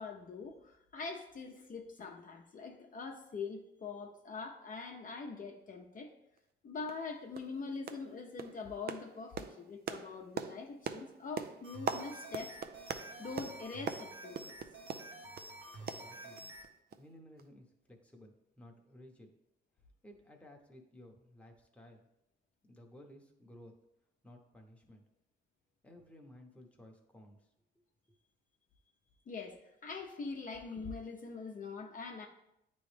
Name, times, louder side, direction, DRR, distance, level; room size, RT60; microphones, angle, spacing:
voice 1, 0.0-6.1 6.6-12.6 13.2-14.5 29.3-32.3, left 4 dB, 45° left, 2 dB, 0.7 m, -43 dB
sound 1, 6.4-6.5 6.9-7.0 7.3-7.6 7.9-8.1 8.4-15.5 15.9-16.7 16.9-17.0 17.4-17.5, right 7 dB, 55° right, 0.5 m, -42 dB
sound 2, 11.6-16.7, right 1 dB, 70° right, 1.2 m, -49 dB
voice 2, 15.8-16.4 17.0-19.3 20.0-22.1 22.7-23.7 24.2-25.0 25.8-27.5, left 1 dB, 5° left, 1 dB, 1.0 m, -56 dB
9.1 x 3.1 x 3.3 m, 0.81 s
cardioid pair, 90°, 20 cm